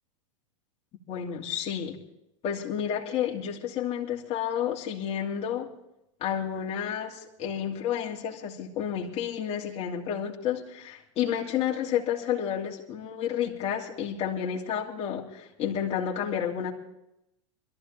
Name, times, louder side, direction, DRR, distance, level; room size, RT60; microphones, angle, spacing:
voice 1, 1.1-2.0 2.4-5.7 6.2-16.7, left 9 dB, 40° left, -3 dB, 2.9 m, -30 dB
22.5 x 14.0 x 3.4 m, 0.83 s
hypercardioid pair, 100°, 17 cm